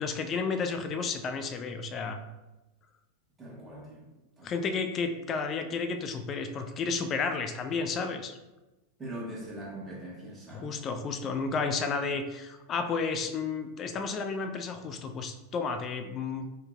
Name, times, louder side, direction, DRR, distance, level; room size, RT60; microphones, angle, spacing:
voice 1, 0.0-2.2 4.4-8.4 10.5-16.5, left 4 dB, 30° left, 8 dB, 0.3 m, -32 dB
voice 2, 3.4-4.0 4.4-4.7 9.0-10.8, right 1 dB, 10° right, -4 dB, 1.0 m, -42 dB
3.4 x 2.1 x 3.6 m, 1.0 s
figure-of-eight pair, 90°, 0 cm